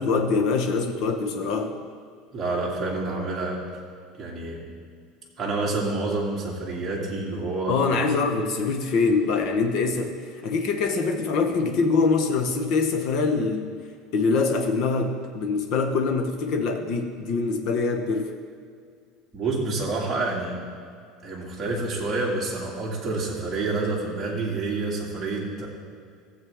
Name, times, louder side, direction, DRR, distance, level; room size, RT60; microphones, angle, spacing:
voice 1, 0.0-1.8 7.7-13.8 14.1-18.3, left 4 dB, 45° left, 5 dB, 0.9 m, -24 dB
voice 2, 2.3-3.6 4.2-4.6 5.4-7.8 19.3-20.6 21.2-25.7, right 3 dB, 15° right, -5 dB, 2.1 m, -28 dB
15.5 x 7.6 x 3.5 m, 2.2 s
cardioid pair, 170°, 0 cm